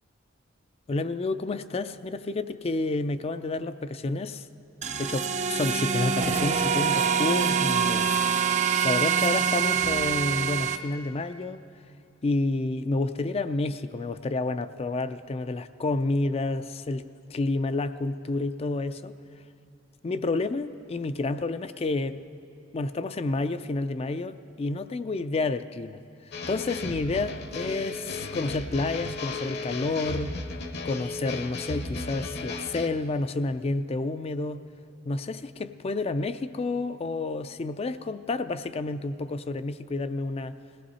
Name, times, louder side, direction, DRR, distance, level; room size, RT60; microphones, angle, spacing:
voice 1, 0.9-4.5 5.0-8.3 8.8-11.6 12.2-17.0 17.3-19.2 20.0-22.2 22.7-26.0 26.5-30.3 30.8-34.6 35.1-40.6, left 2 dB, 30° left, 11 dB, 0.4 m, -29 dB
sound 1, 4.8-10.8, right 7 dB, 35° right, 0.5 m, -25 dB
sound 2, 26.3-32.9, left 3 dB, 55° left, 0.9 m, -35 dB
20.5 x 17.0 x 4.2 m, 2.7 s
head